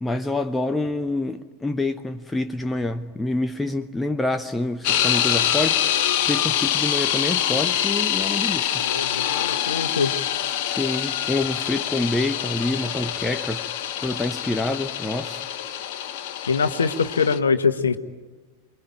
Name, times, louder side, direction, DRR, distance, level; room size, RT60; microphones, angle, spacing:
voice 1, 0.0-5.9 6.3-8.8 10.6-13.7 14.0-15.4, left 2 dB, 10° left, 0.8 m, -27 dB
sound 1, 4.8-17.4, left 11 dB, 45° left, 1.4 m, -25 dB
voice 2, 8.8-10.1 16.5-18.0, left 5 dB, 70° left, 1.4 m, -23 dB
29.0 x 22.0 x 8.8 m
figure-of-eight pair, 90°, 0 cm